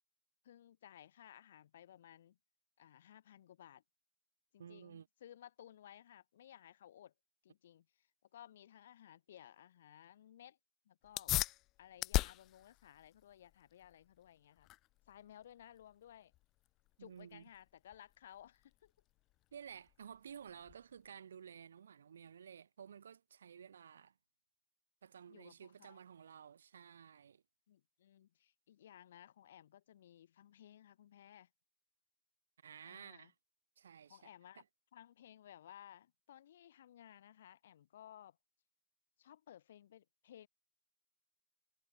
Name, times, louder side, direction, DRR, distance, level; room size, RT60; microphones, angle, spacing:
voice 1, 0.4-2.4 2.8-3.8 4.5-7.1 7.4-8.1 8.3-10.6 10.8-11.3 11.8-14.7 15.1-16.3 17.0-18.9 25.3-26.0 27.7-31.5 32.8-33.3 34.1-34.6 34.9-38.4 39.2-40.5, left 11 dB, 80° left, 3.3 m, -58 dB
voice 2, 4.6-5.1 17.0-17.4 19.5-24.1 25.0-27.4 32.6-33.3 33.8-34.3 34.6-34.7, right 8 dB, 85° right, 2.1 m, -54 dB
sound 1, 11.0-21.1, left 17 dB, 50° left, 1.0 m, -42 dB
hypercardioid pair, 90°, 0 cm